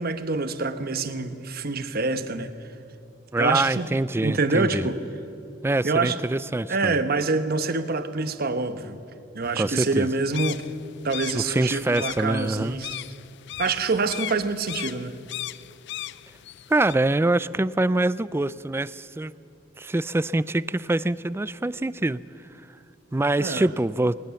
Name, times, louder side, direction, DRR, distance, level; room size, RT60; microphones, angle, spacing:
voice 1, 0.0-2.5 3.4-3.9 4.2-5.0 5.8-6.2 6.7-9.0 9.3-10.6 11.0-13.0 13.6-15.2 23.4-23.7, right 3 dB, 55° right, 10 dB, 1.1 m, -26 dB
voice 2, 3.3-4.9 5.6-7.0 9.6-10.1 11.3-12.8 16.7-19.3 19.8-22.2 23.1-24.2, right 2 dB, 15° right, 17 dB, 0.4 m, -24 dB
sound 1, 9.4-16.9, left 13 dB, 65° left, 0.4 m, -38 dB
19.5 x 19.5 x 7.0 m, 2.7 s
head